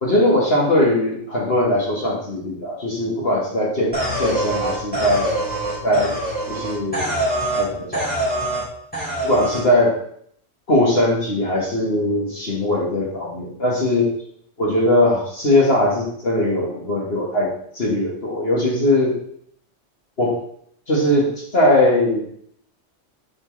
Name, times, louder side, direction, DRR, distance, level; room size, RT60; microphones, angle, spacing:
voice 1, 0.0-5.4 5.8-6.2 6.5-7.1 7.5-8.1 9.2-10.0 10.7-14.1 14.6-19.2 20.2-20.4 20.9-22.3, left 1 dB, 50° left, -3 dB, 1.8 m, -20 dB
sound 1, 3.9-7.7 7.9-8.7 8.9-9.6, right 1 dB, 5° left, 3.4 m, -24 dB
7.3 x 6.3 x 3.2 m, 0.67 s
omnidirectional pair, 1.3 m